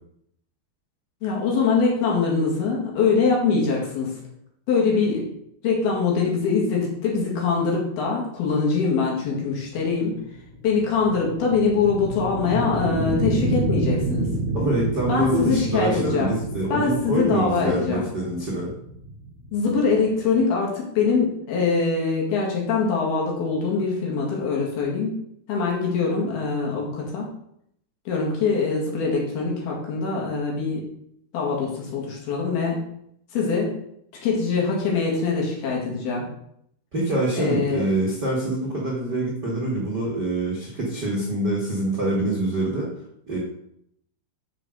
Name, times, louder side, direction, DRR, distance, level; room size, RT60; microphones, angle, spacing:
voice 1, 1.2-4.1 4.7-5.3 5.6-10.2 10.6-14.3 15.1-16.3 16.7-18.0 19.5-25.2 25.5-27.3 28.1-30.9 31.3-32.8 33.3-33.7 34.2-36.3 37.4-37.9, left 4 dB, 60° left, -2 dB, 3.7 m, -23 dB
sound 1, 9.7-20.4, right 1 dB, 45° right, 1.9 m, -29 dB
voice 2, 14.5-18.7 36.9-42.9 43.3-43.4, right 1 dB, 80° right, -4 dB, 0.9 m, -25 dB
8.1 x 5.8 x 6.5 m, 0.73 s
omnidirectional pair, 5.7 m